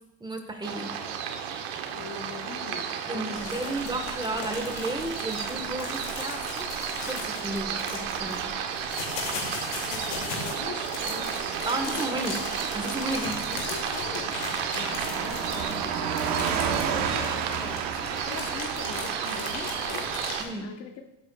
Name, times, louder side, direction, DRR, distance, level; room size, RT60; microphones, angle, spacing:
voice 1, 0.2-1.0 3.1-8.5 11.7-12.4 12.7-13.3 20.4-20.7, right 1 dB, 15° right, 5 dB, 1.5 m, -33 dB
sound 1, 0.6-20.4, right 7 dB, 85° right, 1.2 m, -33 dB
voice 2, 1.9-3.7 9.8-12.4 13.5-20.1 20.6-21.0, left 5 dB, 55° left, 5 dB, 1.3 m, -42 dB
sound 2, 3.3-20.5, left 5 dB, 90° left, 2.9 m, -38 dB
Car passing by / Truck, 5.9-20.3, right 7 dB, 65° right, 1.2 m, -35 dB
15.0 x 8.0 x 2.4 m, 0.89 s
supercardioid pair, 90°, 30 cm